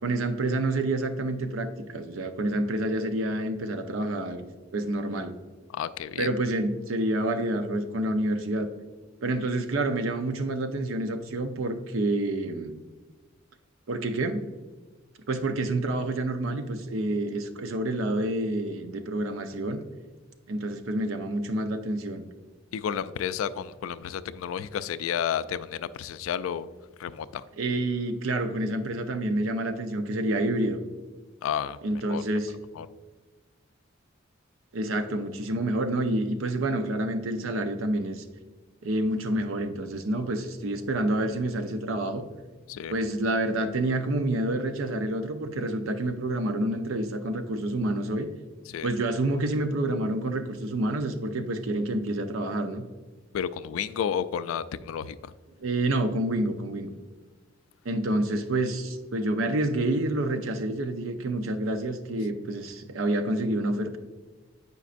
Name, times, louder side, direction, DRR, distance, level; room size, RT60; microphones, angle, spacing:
voice 1, 0.0-4.5 4.7-5.3 6.2-8.7 9.2-12.7 13.9-14.5 15.3-19.8 20.5-22.2 27.6-30.8 31.8-32.5 34.7-38.2 38.8-42.2 42.9-48.3 48.8-52.8 55.6-56.9 57.8-64.0, right 1 dB, 80° right, 7 dB, 0.6 m, -28 dB
voice 2, 5.7-6.3 22.7-26.7 27.0-27.4 31.4-31.8 32.1-32.2 32.8-32.9 42.7-42.9 48.7-48.9 53.3-55.3, left 8 dB, 90° left, 14 dB, 0.3 m, -31 dB
8.0 x 5.3 x 2.5 m, 1.3 s
head